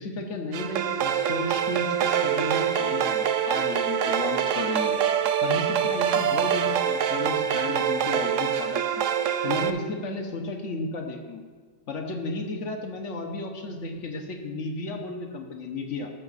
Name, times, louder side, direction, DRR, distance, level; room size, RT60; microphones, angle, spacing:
voice 1, 0.0-5.0 5.4-8.8 9.4-11.4 11.9-16.1, left 3 dB, 70° left, 3 dB, 1.4 m, -33 dB
sound 1, 0.5-9.7, right 8 dB, 75° right, 0.9 m, -25 dB
13.5 x 5.9 x 4.1 m, 1.5 s
omnidirectional pair, 1.3 m